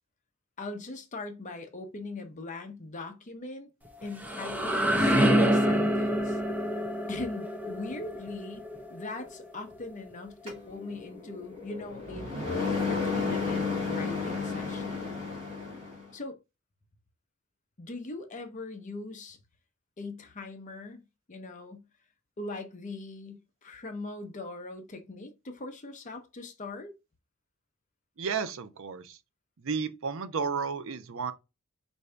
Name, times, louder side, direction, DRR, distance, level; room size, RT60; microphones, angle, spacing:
voice 1, 0.6-3.7 4.0-6.4 7.1-8.6 8.9-15.0 16.1-16.4 17.8-19.4 20.0-21.0 21.3-21.8 22.4-26.9, left 2 dB, 35° left, 0.7 m, -40 dB
sound 1, 3.8-9.6, equal, 10° right, 0.7 m, -27 dB
sound 2, 10.5-16.0, left 4 dB, 25° right, 1.6 m, -32 dB
voice 2, 28.2-29.2 29.6-31.3, right 5 dB, 60° right, 0.5 m, -32 dB
4.6 x 2.6 x 3.3 m
head